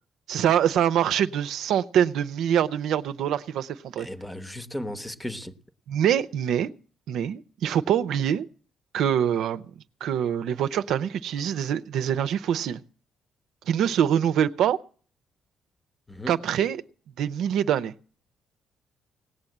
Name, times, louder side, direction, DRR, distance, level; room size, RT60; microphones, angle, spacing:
voice 1, 0.3-4.1 5.9-6.7 7.1-8.5 8.9-9.6 10.0-12.8 13.7-14.8 16.3-16.8 17.2-17.9, right 9 dB, 80° right, 0.6 m, -24 dB
voice 2, 4.0-5.6 16.1-16.4, left 1 dB, 10° left, 0.9 m, -36 dB
18.0 x 7.3 x 7.9 m
cardioid pair, 90°, 0 cm